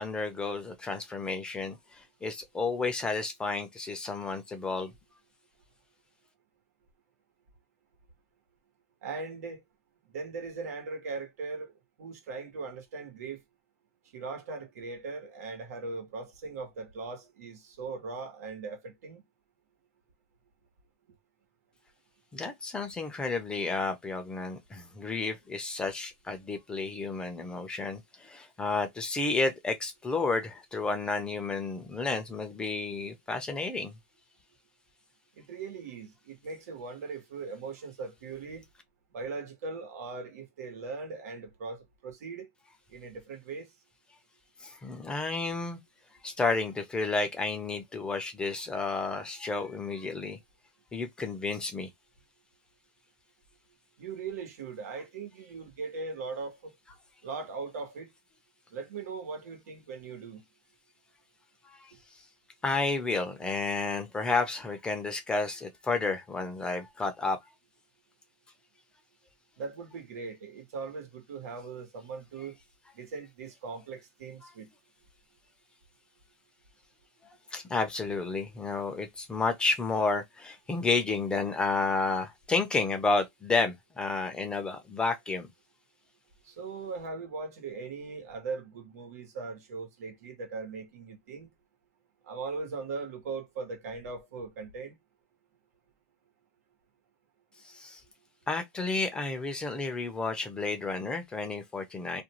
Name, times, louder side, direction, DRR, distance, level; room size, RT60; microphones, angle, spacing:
voice 1, 0.0-4.9 22.3-33.9 44.6-45.8 46.2-50.4 50.9-51.9 61.6-61.9 62.6-67.4 74.4-74.5 77.5-85.5 97.6-98.0 98.5-102.2, left 3 dB, 10° left, 0.5 m, -31 dB
voice 2, 9.0-9.6 10.1-11.7 12.0-13.4 14.1-19.2 35.4-38.6 39.1-42.5 42.9-43.7 54.0-56.6 57.2-58.1 58.7-60.4 69.6-72.6 73.0-74.7 86.5-91.5 92.3-94.9, right 4 dB, 90° right, 1.1 m, -39 dB
2.5 x 2.3 x 2.9 m
supercardioid pair, 155°, 8 cm